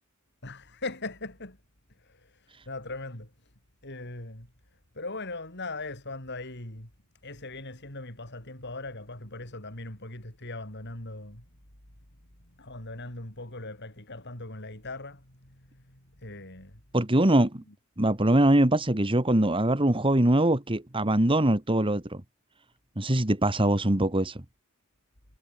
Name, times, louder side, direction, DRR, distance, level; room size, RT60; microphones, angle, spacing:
voice 1, 0.4-1.6 1.9-3.5 3.8-6.9 7.2-11.5 12.4-16.8 17.6-17.7, left 2 dB, 55° left, 6.8 m, -40 dB
voice 2, 16.9-17.6 18.0-22.2 23.0-24.4, right 1 dB, 25° right, 1.9 m, -23 dB
head